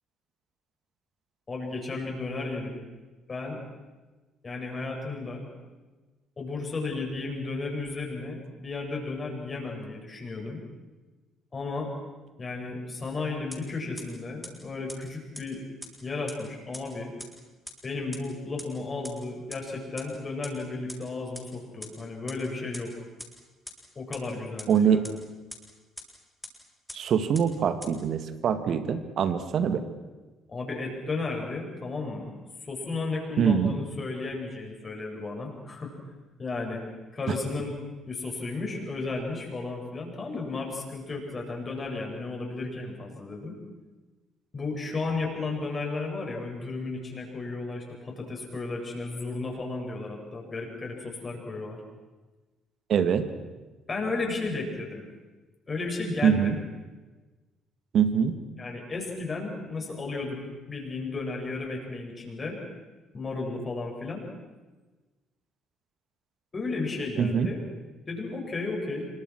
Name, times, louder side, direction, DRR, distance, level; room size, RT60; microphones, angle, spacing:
voice 1, 1.5-2.8 3.3-3.6 4.4-5.4 6.4-10.6 11.5-11.9 12.4-15.6 16.0-17.1 17.8-22.9 23.9-25.0 30.5-32.3 32.6-35.9 36.4-36.9 37.1-37.8 38.1-43.6 44.5-51.8 53.9-55.0 55.7-56.5 58.6-60.4 60.7-62.6 63.1-64.3 66.5-67.6 68.1-69.1, left 3 dB, 35° left, 1 dB, 7.9 m, -34 dB
sound 1, 13.5-13.6 14.0-14.1 14.4-14.5 14.9-15.0 15.3-15.4 15.8-15.9 16.3-16.4 16.7-16.8 17.2-17.3 17.7-17.8 18.1-18.2 18.6-18.7 19.0-19.1 19.5-19.6 20.0-20.1 20.4-20.5 20.9-21.0 21.3-21.4 21.8-21.9 22.3-22.4 22.7-22.8 23.2-23.3 23.7-23.8 24.1-24.2 24.6-24.7 25.0-25.1 25.5-25.6 26.0-26.1 26.4-26.5 26.9-27.0 27.3-27.4 27.8-27.9, left 1 dB, 5° left, 7.9 m, -39 dB
voice 2, 24.7-25.0 26.9-29.8 33.4-33.7 52.9-53.3 56.2-56.6 57.9-58.3 67.2-67.5, right 7 dB, 55° right, 10 dB, 2.0 m, -23 dB
27.0 x 25.0 x 6.4 m, 1.2 s
figure-of-eight pair, 50°, 0 cm